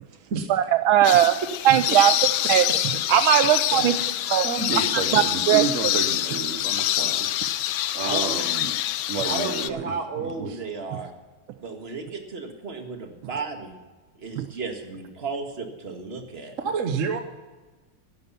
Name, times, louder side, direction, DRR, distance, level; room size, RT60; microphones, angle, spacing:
voice 1, 0.5-1.3 1.6-2.1 2.5-2.7 3.1-4.0 4.3-4.5 4.9-5.6 14.4-14.5, right 11 dB, 75° right, 11 dB, 1.3 m, -19 dB
sound 1, 1.0-9.7, left 13 dB, 75° left, 1.0 m, -25 dB
voice 2, 3.8-4.2 4.4-7.3 8.0-8.7 9.1-10.6 16.6-17.2, right 5 dB, 50° right, 6 dB, 1.0 m, -30 dB
voice 3, 9.2-11.1 11.6-13.7 14.2-16.6, right 4 dB, 30° right, 4 dB, 1.8 m, -33 dB
14.5 x 11.0 x 5.7 m, 1.3 s
omnidirectional pair, 2.4 m